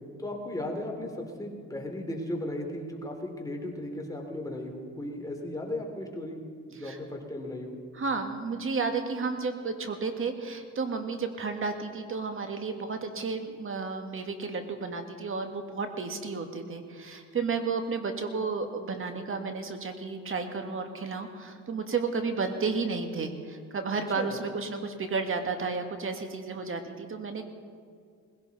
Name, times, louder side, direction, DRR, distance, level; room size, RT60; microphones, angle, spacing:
voice 1, 0.2-6.4 6.7-7.8 24.2-24.3, left 1 dB, 10° left, 1 dB, 3.0 m, -36 dB
voice 2, 7.9-27.5, right 4 dB, 45° right, 6 dB, 1.9 m, -32 dB
20.0 x 16.5 x 4.2 m, 2.1 s
cardioid pair, 90°, 30 cm